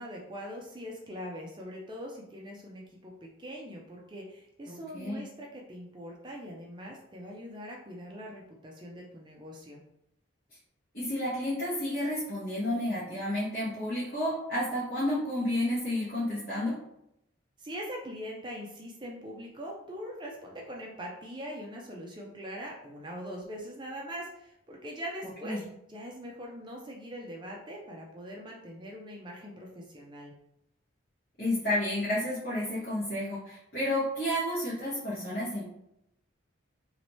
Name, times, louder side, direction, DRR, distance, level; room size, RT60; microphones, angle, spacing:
voice 1, 0.0-9.8 17.6-25.6 25.9-30.3, equal, 25° right, -1 dB, 0.5 m, -42 dB
voice 2, 4.7-5.2 10.9-16.7 25.4-25.6 31.4-35.7, left 1 dB, 45° left, -10 dB, 1.2 m, -31 dB
3.0 x 2.9 x 3.0 m, 0.79 s
head